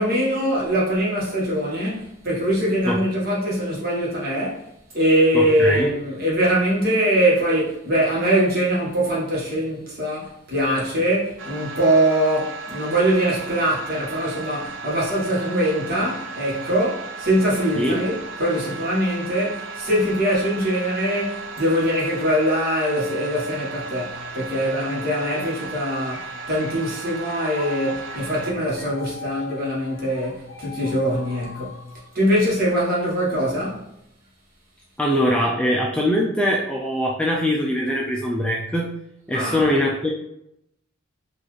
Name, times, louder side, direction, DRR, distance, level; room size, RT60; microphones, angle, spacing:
voice 1, 0.0-4.6 4.9-31.9 32.1-33.9 39.3-39.7, right 1 dB, 50° right, 1.2 m, -22 dB
voice 2, 5.3-5.9 17.8-18.0 35.0-38.9 39.3-40.1, equal, 5° left, 0.3 m, -22 dB
sound 1, 11.4-28.5, right 4 dB, 65° right, 0.4 m, -35 dB
sound 2, 25.5-33.1, left 5 dB, 85° left, 0.6 m, -40 dB
3.9 x 2.5 x 3.1 m
head